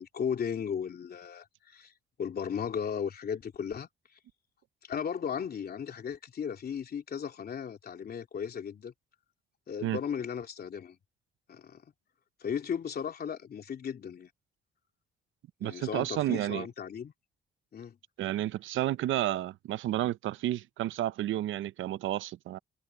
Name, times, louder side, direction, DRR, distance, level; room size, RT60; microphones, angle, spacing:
voice 1, 0.0-1.9 2.2-3.9 4.8-8.9 9.7-11.0 11.5-11.8 12.4-14.3 15.6-17.1 17.7-18.0 18.8-19.0, left 7 dB, 50° left, 3.1 m, -36 dB
voice 2, 15.6-16.7 18.2-22.6, right 13 dB, 80° right, 0.7 m, -31 dB
cardioid pair, 90°, 20 cm